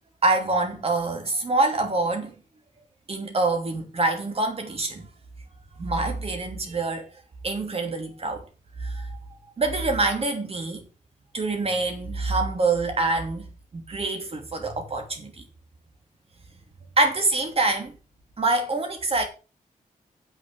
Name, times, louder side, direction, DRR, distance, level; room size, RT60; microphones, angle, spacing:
voice 1, 0.2-2.3 3.1-5.0 5.8-7.0 7.4-8.4 8.8-9.2 9.6-10.8 11.3-13.5 13.7-15.4 17.0-17.9 18.4-19.2, right 2 dB, 45° right, 2.8 m, -25 dB
7.9 x 6.5 x 6.2 m
wide cardioid pair, 120°, 14 cm